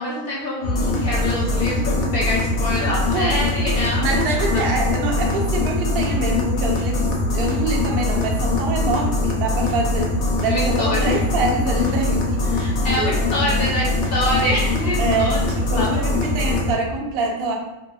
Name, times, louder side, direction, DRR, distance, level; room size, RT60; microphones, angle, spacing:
voice 1, 0.0-4.6 10.5-11.2 12.5-15.4 15.8-16.0, left 1 dB, 65° left, -5 dB, 0.6 m, -25 dB
sound 1, 0.6-16.7, left 2 dB, 85° left, 1.0 m, -22 dB
voice 2, 4.0-10.1 10.4-12.7 12.9-13.5 15.0-17.5, right 2 dB, 65° right, 0 dB, 0.6 m, -25 dB
2.7 x 2.4 x 2.3 m, 1.1 s
omnidirectional pair, 1.5 m